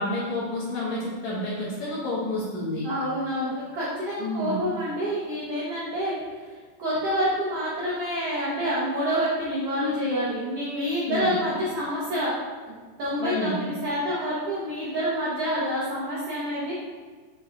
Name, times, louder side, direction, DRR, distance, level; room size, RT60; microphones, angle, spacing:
voice 1, 0.0-2.9 4.2-4.6 11.1-11.4 13.2-13.6, left 1 dB, 70° left, -7 dB, 1.9 m, -29 dB
voice 2, 2.8-6.5 6.8-12.3 13.0-16.7, equal, 80° right, -8 dB, 1.3 m, -27 dB
6.2 x 2.3 x 3.5 m, 1.5 s
omnidirectional pair, 3.9 m